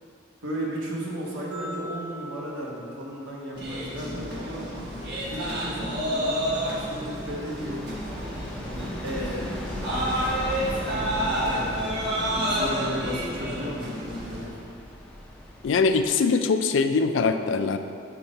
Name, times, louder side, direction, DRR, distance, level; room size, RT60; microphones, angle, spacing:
voice 1, 0.4-4.7 5.2-7.9 8.6-9.6 9.9-10.4 10.8-12.0 12.4-14.5, equal, 90° right, -4 dB, 1.3 m, -35 dB
sound 1, 1.5-3.9, equal, 20° right, 0.9 m, -42 dB
sound 2, 3.5-14.5, equal, 55° right, 1.2 m, -30 dB
sound 3, 4.7-16.1, equal, 5° left, 0.4 m, -39 dB
voice 2, 15.6-17.8, left 4 dB, 75° left, 8 dB, 0.4 m, -22 dB
5.8 x 3.7 x 5.3 m, 2.5 s
head